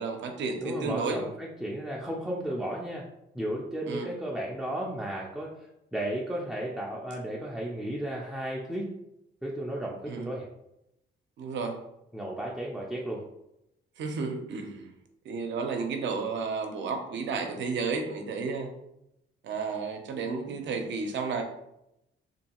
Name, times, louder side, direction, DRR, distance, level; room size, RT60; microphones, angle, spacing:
voice 1, 0.0-1.2 3.9-4.1 10.1-10.3 11.4-11.8 14.0-14.9 15.2-18.7 19.4-21.4, right 4 dB, 65° right, 5 dB, 0.6 m, -32 dB
voice 2, 0.6-3.1 3.3-5.5 5.9-8.9 9.4-10.5 12.1-13.2, right 1 dB, 5° right, -4 dB, 0.4 m, -34 dB
2.6 x 2.3 x 2.9 m, 0.84 s
cardioid pair, 90°, 20 cm